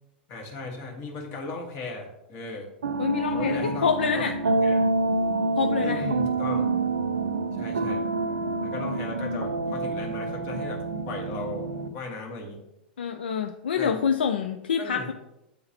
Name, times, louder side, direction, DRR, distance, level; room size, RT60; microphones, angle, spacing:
voice 1, 0.3-2.7 3.3-3.9 4.1-4.3 4.6-4.8 5.8-6.7 7.5-8.0 8.6-12.6 13.8-14.0 14.8-15.1, left 3 dB, 40° left, 1 dB, 1.6 m, -36 dB
sound 1, 2.8-11.9, right 2 dB, 75° right, 0.5 m, -27 dB
voice 2, 3.0-4.3 5.6-6.1 13.0-15.1, left 6 dB, 70° left, 7 dB, 0.4 m, -26 dB
8.7 x 3.7 x 2.9 m, 0.87 s
figure-of-eight pair, 95°, 6 cm